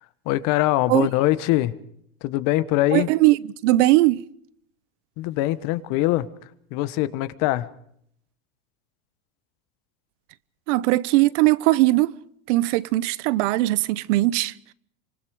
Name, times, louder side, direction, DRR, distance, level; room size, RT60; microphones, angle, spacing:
voice 1, 0.2-1.7 2.2-3.1 5.2-6.3 6.7-7.7, left 16 dB, 50° left, 1.5 m, -22 dB
voice 2, 2.9-3.4 3.6-4.2 10.7-12.1 12.5-14.5, right 18 dB, 60° right, 1.1 m, -19 dB
26.5 x 25.5 x 4.9 m
supercardioid pair, 135°, 41 cm